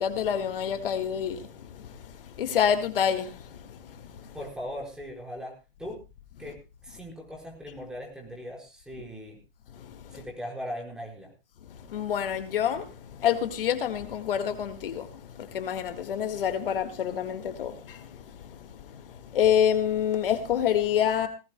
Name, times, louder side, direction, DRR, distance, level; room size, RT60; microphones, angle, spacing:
voice 1, 0.0-4.3 9.8-10.2 11.9-21.3, left 9 dB, 65° left, 9 dB, 1.9 m, -28 dB
voice 2, 4.3-5.5 5.8-6.0 6.4-9.4 10.1-11.3, equal, ahead, 0 dB, 4.9 m, -39 dB
19.0 x 18.5 x 2.2 m, 0.29 s
hypercardioid pair, 135°, 30 cm